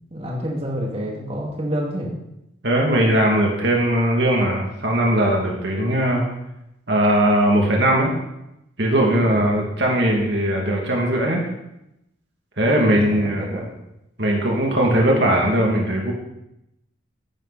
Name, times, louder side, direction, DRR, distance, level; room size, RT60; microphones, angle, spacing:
voice 1, 0.1-2.1 9.2-9.4 12.8-13.1 13.5-13.7, equal, 30° right, -2 dB, 2.8 m, -28 dB
voice 2, 2.6-6.2 6.9-8.1 8.8-11.4 12.6-13.6 14.2-16.1, right 1 dB, 60° right, -1 dB, 2.7 m, -19 dB
17.0 x 10.0 x 4.3 m, 0.86 s
head